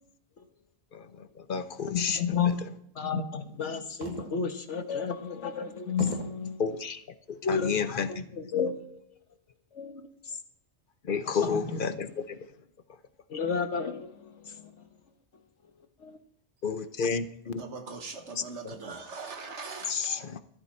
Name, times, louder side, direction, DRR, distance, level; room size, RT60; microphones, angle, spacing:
voice 1, 0.9-2.5 6.6-7.0 7.3-8.2 11.0-12.4 16.6-17.6 18.4-18.7 19.9-20.4, left 6 dB, 50° left, 0.8 m, -31 dB
voice 2, 1.9-2.6 2.9-6.6 7.4-7.8 8.3-9.0 9.7-10.1 11.4-11.8 13.3-14.7 16.0-16.2 19.9-20.0, left 6 dB, 80° left, 1.5 m, -31 dB
sound 1, 4.0-4.6 5.2-5.3 6.0-6.5 7.3-7.7, right 2 dB, 40° right, 1.8 m, -38 dB
voice 3, 17.6-20.3, right 4 dB, 80° right, 1.7 m, -41 dB
13.5 x 12.0 x 4.4 m
omnidirectional pair, 1.2 m